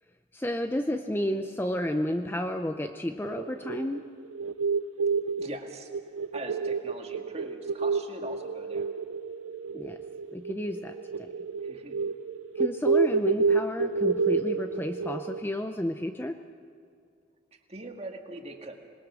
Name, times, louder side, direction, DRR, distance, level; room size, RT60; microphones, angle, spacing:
voice 1, 0.3-4.0 9.7-10.0 10.3-11.3 12.6-16.4, left 1 dB, 10° left, 7 dB, 0.5 m, -31 dB
sound 1, 3.3-15.4, right 4 dB, 90° right, 0.5 m, -29 dB
voice 2, 5.4-5.9 6.2-8.9 11.6-12.0 17.7-18.8, right 2 dB, 30° right, 3 dB, 1.9 m, -41 dB
26.5 x 20.5 x 6.2 m, 2.3 s
head